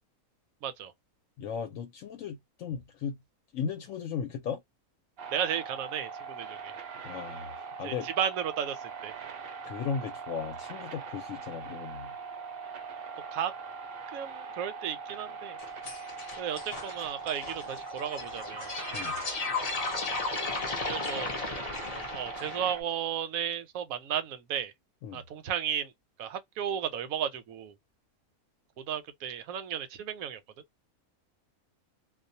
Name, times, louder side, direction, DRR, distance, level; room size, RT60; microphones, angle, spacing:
voice 1, 0.6-0.9 5.3-6.7 7.8-9.1 13.3-13.5 14.1-15.6 16.4-18.7 20.9-21.3 21.9-24.7 25.1-25.9 26.2-27.7 28.8-30.4, right 9 dB, 80° right, 1.0 m, -34 dB
voice 2, 1.4-3.2 3.5-4.6 7.0-8.1 9.6-12.1 18.9-19.1 25.0-25.2, left 6 dB, 70° left, 1.0 m, -36 dB
sound 1, 5.2-22.8, right 5 dB, 55° right, 0.7 m, -41 dB
sound 2, 15.6-22.7, left 3 dB, 45° left, 0.5 m, -35 dB
2.4 x 2.2 x 2.6 m
omnidirectional pair, 1.5 m